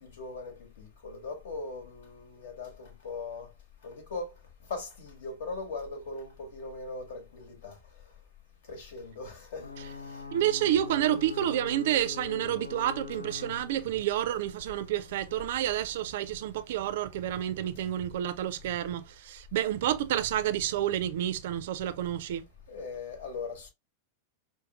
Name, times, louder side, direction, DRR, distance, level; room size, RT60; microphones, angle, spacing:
voice 1, 0.0-3.5 3.8-4.3 4.7-7.8 8.7-10.2 22.7-23.7, left 3 dB, 60° left, 1.2 m, -40 dB
Ocean / Boat Water vehicle / Alarm, 9.6-17.1, left 5 dB, 80° left, 0.4 m, -44 dB
voice 2, 10.3-22.4, right 12 dB, 55° right, 0.4 m, -29 dB
5.3 x 2.1 x 2.3 m
figure-of-eight pair, 90°, 0 cm